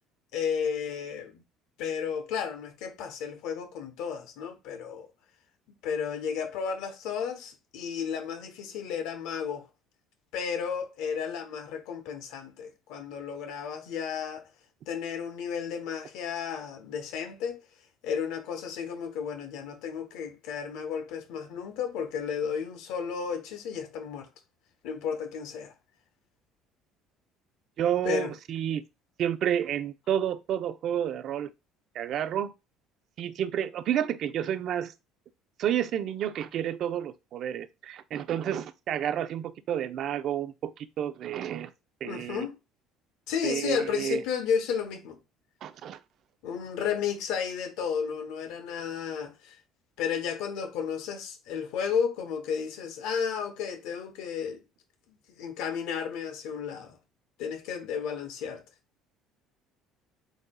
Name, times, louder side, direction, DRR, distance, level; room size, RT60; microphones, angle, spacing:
voice 1, 0.3-1.4 1.8-5.1 5.8-9.7 10.3-14.5 14.9-17.6 18.0-24.3 24.8-25.7 28.0-28.3 42.0-42.6 43.3-45.2 46.4-49.6 50.0-54.6 55.4-57.0 57.4-58.6, left 7 dB, 80° left, 0.9 m, -33 dB
voice 2, 27.8-28.8 29.2-31.5 31.9-32.5 33.2-34.9 35.6-41.7 42.0-42.5 43.4-44.2 45.6-46.0, right 10 dB, 55° right, 0.5 m, -30 dB
7.9 x 2.7 x 2.3 m
cardioid pair, 110°, 0 cm